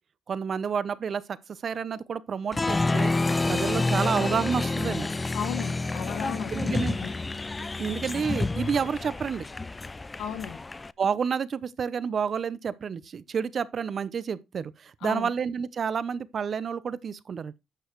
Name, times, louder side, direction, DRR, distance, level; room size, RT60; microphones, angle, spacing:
voice 1, 0.3-3.1 3.5-5.1 6.5-7.0 7.8-9.4 11.0-17.5, right 6 dB, 50° right, 0.7 m, -30 dB
Applause, 2.5-10.9, left 3 dB, 20° left, 0.4 m, -29 dB
voice 2, 5.3-7.1 10.2-10.7 15.0-15.3, left 9 dB, 85° left, 1.4 m, -35 dB
11.5 x 7.0 x 3.1 m
cardioid pair, 90°, 0 cm